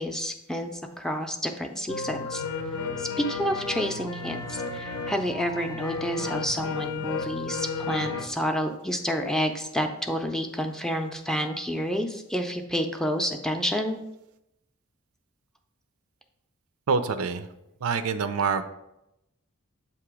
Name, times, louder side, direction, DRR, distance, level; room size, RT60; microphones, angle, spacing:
voice 1, 0.0-2.4 3.0-14.0, equal, 5° left, 4 dB, 0.4 m, -29 dB
sound 1, 1.9-8.3, left 4 dB, 75° left, 0.7 m, -33 dB
voice 2, 16.9-17.5 17.8-18.6, right 5 dB, 85° right, 10 dB, 0.5 m, -26 dB
7.6 x 2.9 x 4.8 m, 0.87 s
head